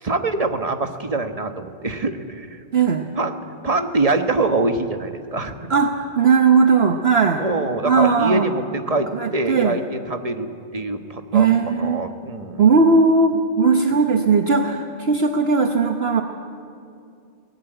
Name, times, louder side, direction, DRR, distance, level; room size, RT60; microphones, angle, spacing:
voice 1, 0.0-2.6 3.2-3.4 3.6-5.5 7.4-10.5 10.7-12.6, right 2 dB, 30° right, 7 dB, 1.3 m, -24 dB
voice 2, 2.7-3.1 5.7-7.4 7.8-8.5 9.1-9.8 11.3-12.0 12.6-16.2, right 4 dB, 55° right, 4 dB, 1.2 m, -18 dB
22.0 x 19.0 x 9.1 m, 2.5 s
omnidirectional pair, 1.3 m